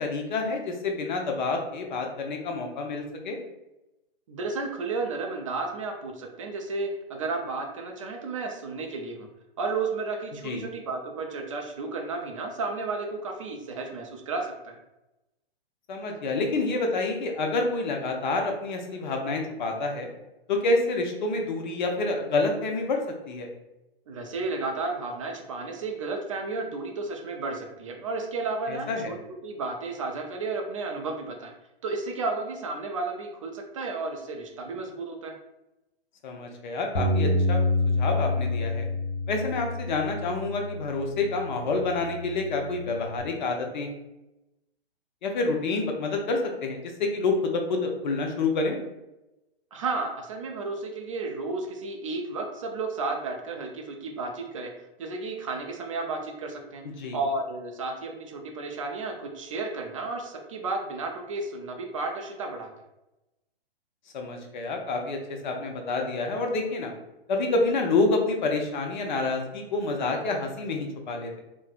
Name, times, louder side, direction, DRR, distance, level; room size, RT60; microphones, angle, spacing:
voice 1, 0.0-3.4 10.4-10.6 15.9-20.1 20.5-23.5 28.7-29.1 36.2-37.6 38.0-38.9 39.3-43.9 45.2-48.8 56.8-57.2 64.1-66.9 67.3-71.4, left 3 dB, 50° left, 3 dB, 0.7 m, -28 dB
voice 2, 4.3-9.3 9.6-14.8 24.1-28.9 29.4-31.5 31.8-35.3 49.7-54.7 55.0-56.8 57.1-62.7, right 3 dB, 35° right, 2 dB, 0.4 m, -32 dB
Bass guitar, 36.9-43.2, left 2 dB, 85° left, 0.7 m, -28 dB
4.2 x 2.0 x 2.4 m, 0.95 s
hypercardioid pair, 130°, 31 cm